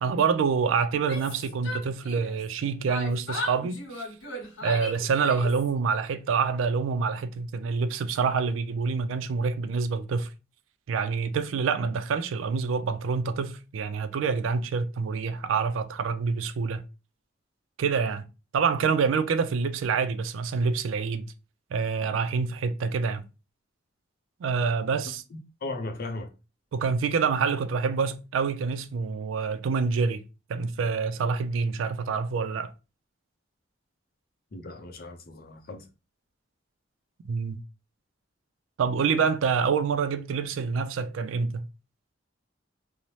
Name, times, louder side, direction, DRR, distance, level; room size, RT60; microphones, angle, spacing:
voice 1, 0.0-4.1 4.6-10.3 10.9-16.8 17.8-18.2 18.5-21.3 21.7-23.2 24.4-25.2 26.7-30.2 30.5-32.7 37.3-37.6 38.8-41.6, right 5 dB, 90° right, 0.3 m, -27 dB
Yell, 0.9-2.5 2.9-5.7, left 2 dB, 85° left, 0.8 m, -37 dB
voice 2, 25.3-26.3 34.5-35.8, left 2 dB, 50° left, 0.5 m, -37 dB
2.7 x 2.0 x 3.1 m
head